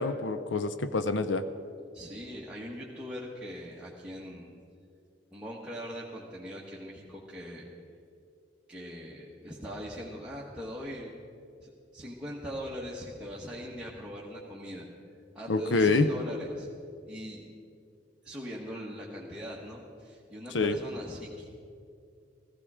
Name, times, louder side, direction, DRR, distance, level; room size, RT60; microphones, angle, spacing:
voice 1, 0.0-1.4 15.5-16.1 20.5-20.8, left 3 dB, 75° left, 11 dB, 0.6 m, -26 dB
voice 2, 1.9-4.5 5.3-7.7 8.7-11.1 11.6-14.9 15.3-16.7 17.1-17.4 18.2-21.5, equal, 5° right, -6 dB, 1.4 m, -41 dB
15.5 x 15.5 x 4.9 m, 2.4 s
head